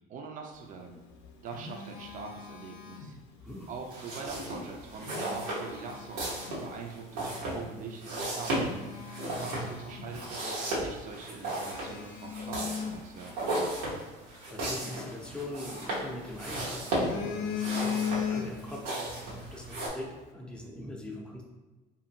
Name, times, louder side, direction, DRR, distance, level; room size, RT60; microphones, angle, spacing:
voice 1, 0.1-1.0 1.4-3.2 3.7-8.6 9.4-13.5, right 4 dB, 40° right, 2 dB, 0.5 m, -43 dB
Telephone, 1.0-3.5 4.8-6.7 7.3-7.5 8.0-8.1 8.5-10.5 10.8-10.9 11.4-13.8 15.3-16.3 16.7-18.9 19.1-19.4, left 7 dB, 75° left, 0.5 m, -38 dB
sound 1, 3.8-19.9, right 1 dB, 85° right, 1.0 m, -35 dB
voice 2, 14.5-19.2 19.5-21.4, left 1 dB, 5° left, -1 dB, 0.6 m, -42 dB
2.6 x 2.5 x 2.7 m, 1.2 s
supercardioid pair, 90°, 20 cm